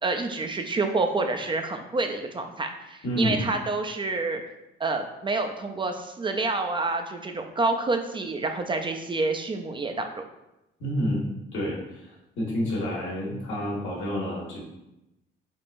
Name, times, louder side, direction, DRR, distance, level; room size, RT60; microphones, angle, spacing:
voice 1, 0.0-4.4 4.8-10.2, right 3 dB, 25° right, 5 dB, 0.3 m, -28 dB
voice 2, 3.0-3.4 10.8-12.0 12.4-14.6, equal, 80° left, -4 dB, 1.3 m, -29 dB
3.6 x 3.3 x 2.5 m, 0.92 s
cardioid pair, 90°, 20 cm